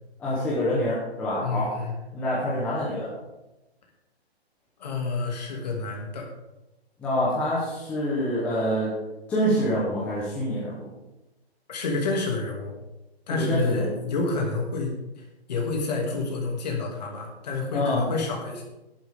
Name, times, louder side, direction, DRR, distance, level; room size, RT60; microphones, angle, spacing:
voice 1, 0.2-1.7 2.1-3.1 7.0-8.9 9.3-10.8 13.3-13.9 17.7-18.0, equal, 5° left, -8 dB, 0.9 m, -26 dB
voice 2, 1.4-1.9 4.8-6.3 11.7-12.8 13.3-18.6, left 3 dB, 40° left, 1 dB, 2.5 m, -29 dB
11.5 x 10.5 x 3.7 m, 0.97 s
hypercardioid pair, 175°, 33 cm